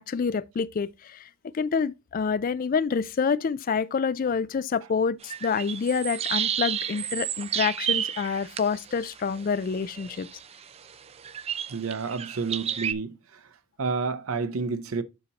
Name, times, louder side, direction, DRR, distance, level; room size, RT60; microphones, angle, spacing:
voice 1, 0.0-10.3, left 5 dB, 40° left, 0.3 m, -27 dB
sound 1, 5.2-12.9, right 9 dB, 30° right, 0.4 m, -31 dB
voice 2, 11.7-13.2 13.8-15.0, right 4 dB, 85° right, 0.6 m, -29 dB
11.5 x 4.2 x 2.8 m
head